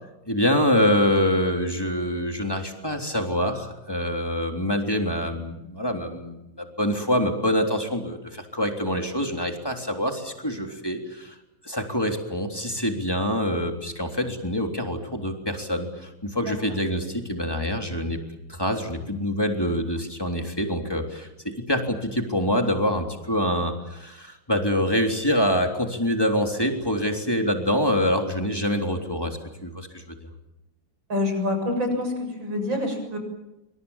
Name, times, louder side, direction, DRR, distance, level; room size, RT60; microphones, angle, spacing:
voice 1, 0.3-11.4 11.6-18.2 18.5-30.0, equal, 10° left, 3 dB, 3.5 m, -25 dB
voice 2, 31.1-33.2, left 2 dB, 75° right, 5 dB, 8.1 m, -26 dB
28.0 x 25.0 x 7.4 m, 0.94 s
omnidirectional pair, 2.1 m